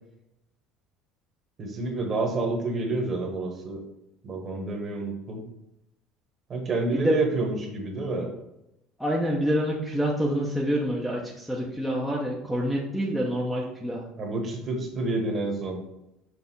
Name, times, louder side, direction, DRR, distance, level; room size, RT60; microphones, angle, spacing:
voice 1, 1.6-3.8 4.2-5.4 6.5-8.3 14.2-15.8, right 2 dB, 25° right, 2 dB, 1.2 m, -29 dB
voice 2, 9.0-14.1, equal, ahead, -3 dB, 0.7 m, -27 dB
6.3 x 3.4 x 5.3 m, 0.87 s
cardioid pair, 170°, 0 cm